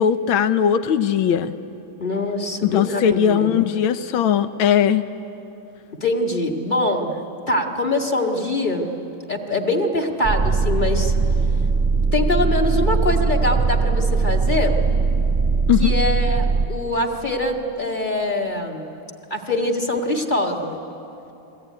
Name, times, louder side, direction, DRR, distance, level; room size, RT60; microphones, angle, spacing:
voice 1, 0.0-1.5 2.6-5.0 15.7-15.9, left 9 dB, 90° left, 11 dB, 1.6 m, -19 dB
voice 2, 2.0-3.5 6.0-7.2 7.5-8.9 9.3-11.1 12.1-14.8 15.8-18.9 19.3-20.8, left 2 dB, 25° left, 3 dB, 2.1 m, -23 dB
sound 1, 10.2-16.7, right 4 dB, 20° right, 0.9 m, -20 dB
28.5 x 22.0 x 9.5 m, 2.9 s
omnidirectional pair, 2.2 m